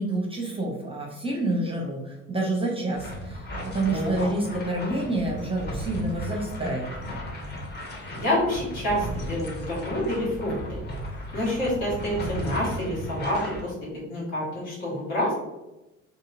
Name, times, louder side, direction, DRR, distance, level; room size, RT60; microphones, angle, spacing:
voice 1, 0.0-6.9, right 2 dB, 15° right, -1 dB, 0.5 m, -28 dB
sound 1, 2.9-13.6, equal, 25° left, 0.8 m, -35 dB
voice 2, 3.8-4.3 8.1-10.8 11.3-13.7 14.1-15.3, equal, 75° left, -6 dB, 1.4 m, -28 dB
2.8 x 2.7 x 2.4 m, 1.0 s
figure-of-eight pair, 55°, 41 cm